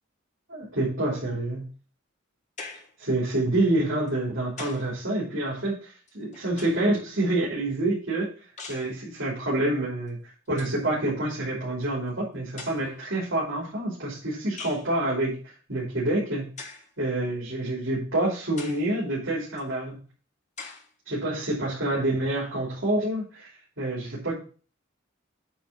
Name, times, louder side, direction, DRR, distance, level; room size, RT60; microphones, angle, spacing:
voice 1, 0.5-1.7 3.0-8.3 8.7-10.2 10.5-20.0 21.0-23.5 23.8-24.4, right 1 dB, 70° right, -6 dB, 3.0 m, -27 dB
sound 1, 2.6-3.0 4.1-5.0 6.1-7.0 8.6-9.0 10.1-10.2 10.5-10.8 11.8-11.9 12.6-13.1 14.6-14.9 16.6-16.9 17.6-17.7 18.6-18.9 19.6-19.7 20.6-20.9, left 4 dB, 35° left, 1.4 m, -42 dB
8.6 x 3.5 x 6.8 m, 0.39 s
head